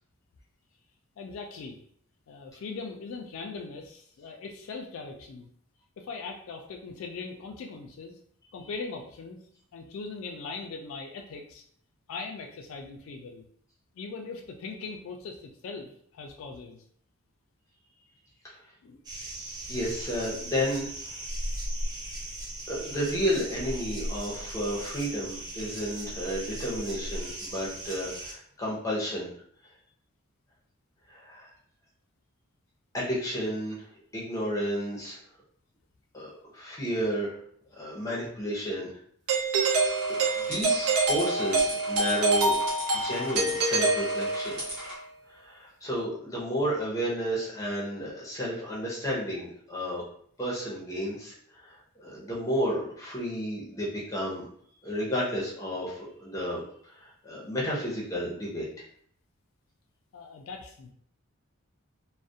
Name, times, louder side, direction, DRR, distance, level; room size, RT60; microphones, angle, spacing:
voice 1, 1.2-1.8 2.3-5.5 6.0-8.2 8.5-9.4 9.7-11.6 12.1-13.4 14.0-16.8 18.8-19.0 60.1-60.9, left 4 dB, 70° left, 2 dB, 0.3 m, -40 dB
sound 1, 19.0-28.3, right 1 dB, 20° right, 0.3 m, -37 dB
voice 2, 19.7-20.9 22.7-29.3 31.1-31.5 32.9-33.8 34.1-35.2 36.1-37.4 37.8-38.9 40.1-42.5 42.9-44.6 45.3-50.0 50.4-54.5 54.8-58.7, equal, 15° left, -5 dB, 0.6 m, -32 dB
Doorbell, 39.3-44.7, right 3 dB, 85° right, 0.4 m, -26 dB
sound 2, 39.6-45.0, equal, 50° right, 1.1 m, -39 dB
2.4 x 2.0 x 2.6 m, 0.63 s
head